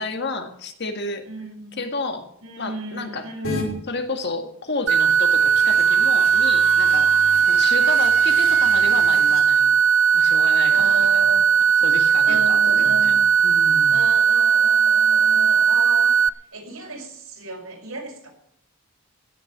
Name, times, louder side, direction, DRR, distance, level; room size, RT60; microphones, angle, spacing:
voice 1, 0.0-1.3 1.8-2.3 2.6-3.3 3.9-7.1 7.5-9.8 10.1-11.2 11.8-14.0, left 3 dB, 50° left, 6 dB, 1.8 m, -31 dB
voice 2, 1.2-1.9 2.4-3.8 7.8-7.9 10.7-11.5 12.1-13.2 13.9-18.3, right 3 dB, 80° right, 0 dB, 6.2 m, -34 dB
sound 1, 3.4-3.6 5.0-9.4, left 3 dB, 65° left, 5.5 m, -34 dB
sound 2, 4.9-16.3, right 7 dB, 55° right, 0.5 m, -17 dB
16.5 x 7.6 x 8.5 m, 0.73 s
head